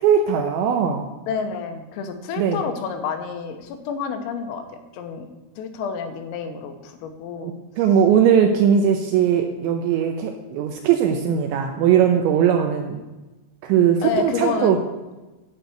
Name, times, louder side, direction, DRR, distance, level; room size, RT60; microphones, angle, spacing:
voice 1, 0.0-1.0 2.4-2.6 7.4-13.0 13.6-14.8, right 8 dB, 80° right, 4 dB, 2.7 m, -19 dB
voice 2, 1.3-4.6 4.9-5.3 5.6-7.5 14.0-14.8, left 6 dB, 90° left, 6 dB, 3.7 m, -29 dB
11.5 x 4.5 x 7.8 m, 1.1 s
omnidirectional pair, 5.9 m